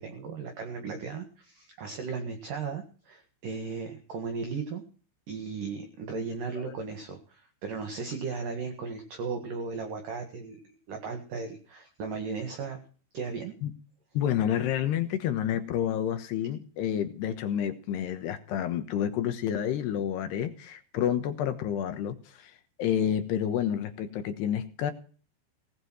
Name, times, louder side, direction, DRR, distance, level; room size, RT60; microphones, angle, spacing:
voice 1, 0.0-4.8 5.3-12.8 13.1-13.5, right 5 dB, 55° right, 5 dB, 2.9 m, -36 dB
voice 2, 14.1-22.5 22.8-24.9, left 9 dB, 70° left, 9 dB, 2.9 m, -29 dB
18.0 x 8.2 x 6.3 m, 0.40 s
omnidirectional pair, 5.7 m